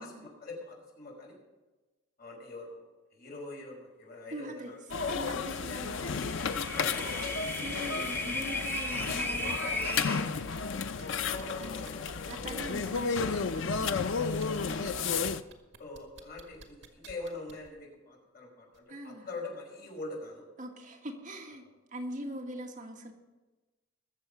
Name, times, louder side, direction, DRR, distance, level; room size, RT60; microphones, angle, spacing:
voice 1, 0.0-1.4 2.2-4.8 6.7-7.4 11.2-12.8 13.7-14.9 15.8-20.4, left 2 dB, 50° left, -2 dB, 5.3 m, -44 dB
voice 2, 4.3-4.7 5.0-6.3 7.6-10.7 12.3-14.0 14.6-14.9 18.9-19.3 20.6-21.6 21.9-23.1, right 1 dB, 40° right, 1 dB, 1.6 m, -42 dB
sound 1, 4.9-15.4, left 5 dB, 75° left, 0.6 m, -33 dB
sound 2, 6.0-10.2, left 1 dB, 10° left, 1.2 m, -36 dB
sound 3, 10.5-11.0 11.4-13.8 14.3-14.9 15.3-17.7 18.7-18.8, right 4 dB, 70° right, 1.8 m, -52 dB
21.0 x 7.4 x 5.7 m, 1.2 s
head